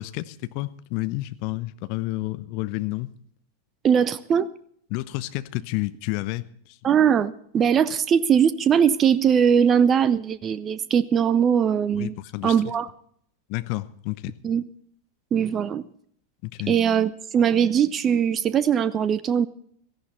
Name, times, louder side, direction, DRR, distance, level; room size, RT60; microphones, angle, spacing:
voice 1, 0.0-3.1 4.9-6.4 11.9-12.6 13.5-14.3 16.4-16.7, left 19 dB, 45° left, 0.8 m, -30 dB
voice 2, 3.8-4.5 6.8-12.1 12.4-12.9 14.4-14.6 15.3-15.8 16.7-19.5, right 8 dB, 25° right, 0.6 m, -20 dB
17.0 x 14.5 x 4.1 m
figure-of-eight pair, 90°, 0 cm